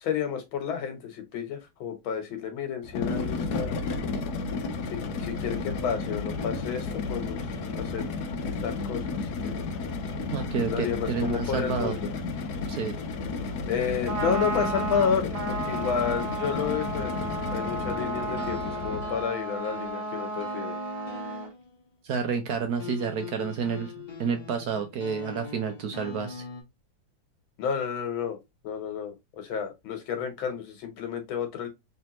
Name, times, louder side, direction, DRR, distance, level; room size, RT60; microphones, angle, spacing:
voice 1, 0.0-3.8 4.9-7.4 7.7-8.1 8.6-9.1 9.4-9.6 10.7-12.1 13.6-20.8 27.6-28.4 28.6-31.7, left 7 dB, 90° left, 1.8 m, -31 dB
sound 1, 2.8-19.3, left 3 dB, 65° left, 1.2 m, -32 dB
voice 2, 10.3-11.9 12.7-12.9 22.1-23.9 24.2-26.4, right 6 dB, 65° right, 1.0 m, -29 dB
Trumpet, 13.9-21.5, right 3 dB, 50° right, 1.4 m, -33 dB
sound 2, 18.4-21.9 22.8-26.6, left 5 dB, 30° left, 0.9 m, -42 dB
3.4 x 3.4 x 2.9 m
omnidirectional pair, 2.1 m